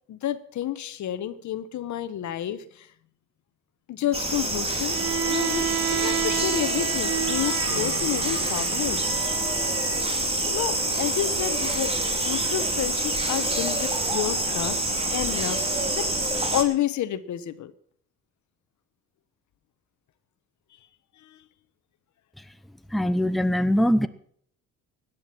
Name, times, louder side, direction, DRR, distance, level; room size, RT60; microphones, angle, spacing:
voice 1, 0.1-2.9 3.9-9.0 10.5-11.9 12.2-17.7 21.2-21.4, left 12 dB, 70° left, 13 dB, 1.1 m, -30 dB
sound 1, 4.1-16.6, right 2 dB, 20° right, 2.9 m, -26 dB
Bowed string instrument, 4.9-10.1, right 10 dB, 55° right, 0.8 m, -31 dB
voice 2, 22.9-24.1, equal, ahead, 11 dB, 0.8 m, -22 dB
17.0 x 10.5 x 6.0 m, 0.63 s
cardioid pair, 90°, 30 cm